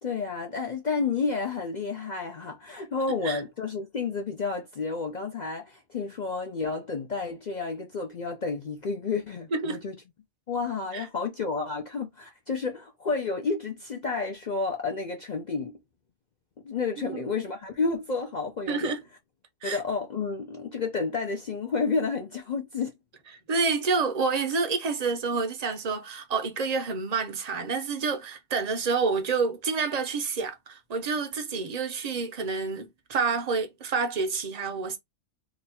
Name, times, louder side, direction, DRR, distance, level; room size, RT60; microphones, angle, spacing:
voice 1, 0.0-10.0 10.5-15.7 16.6-18.9 19.6-22.9, left 4 dB, 55° left, 0.5 m, -30 dB
voice 2, 9.5-9.8 10.9-11.1 17.0-17.2 18.7-19.0 19.6-19.8 23.5-35.0, right 4 dB, 45° right, 0.5 m, -28 dB
2.9 x 2.3 x 4.1 m
omnidirectional pair, 1.4 m